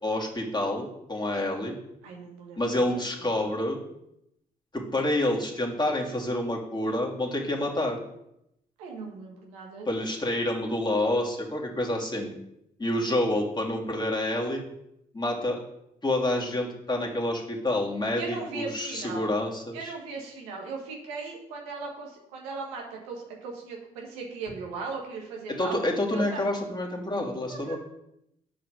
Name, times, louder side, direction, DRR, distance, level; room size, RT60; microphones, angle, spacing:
voice 1, 0.0-1.8 2.6-3.8 4.7-8.0 9.9-12.3 12.8-14.6 15.1-15.6 16.0-19.9 25.6-27.8, left 1 dB, 20° left, -2 dB, 2.8 m, -28 dB
voice 2, 2.0-2.6 2.9-3.5 8.8-10.0 18.2-19.3 19.7-25.8 26.1-26.4 27.5-27.8, right 4 dB, 85° right, 0 dB, 1.6 m, -38 dB
7.5 x 5.0 x 6.5 m, 0.81 s
hypercardioid pair, 45°, 19 cm